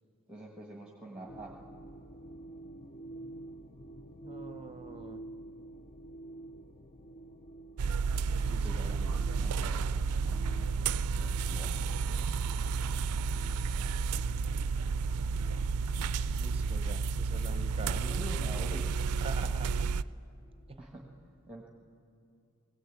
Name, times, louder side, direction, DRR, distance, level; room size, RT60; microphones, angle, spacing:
voice 1, 0.3-1.6 8.6-10.0 10.2-10.8 11.1-12.3 13.8-14.2 17.8-19.0 20.8-21.0 21.5-21.7, right 1 dB, 5° right, 0 dB, 1.4 m, -46 dB
sound 1, 1.3-20.7, right 2 dB, 30° left, 0.6 m, -51 dB
voice 2, 4.2-5.2 8.4-9.0 16.4-18.3 19.2-19.9 20.7-20.8, right 3 dB, 25° right, 9 dB, 0.8 m, -45 dB
sound 2, 7.8-20.0, right 5 dB, 80° right, 0.4 m, -31 dB
20.0 x 16.5 x 8.3 m, 2.6 s
head